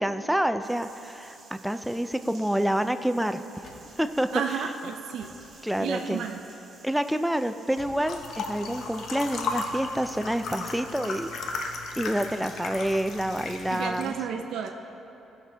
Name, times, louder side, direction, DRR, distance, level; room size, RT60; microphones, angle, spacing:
voice 1, 0.0-3.4 4.0-4.3 5.6-6.2 6.8-11.3 12.0-14.1, equal, 5° right, 9 dB, 0.3 m, -28 dB
sound 1, 0.6-13.8, right 4 dB, 40° right, 1.5 m, -53 dB
sound 2, 2.2-8.8 9.4-13.2, left 2 dB, 40° left, 1.4 m, -55 dB
voice 2, 4.3-5.3 5.8-6.4 13.7-14.7, right 7 dB, 75° right, 3 dB, 0.5 m, -31 dB
sound 3, 8.1-14.1, left 3 dB, 65° left, 0.8 m, -35 dB
16.5 x 5.9 x 3.4 m, 3.0 s
cardioid pair, 130°, 0 cm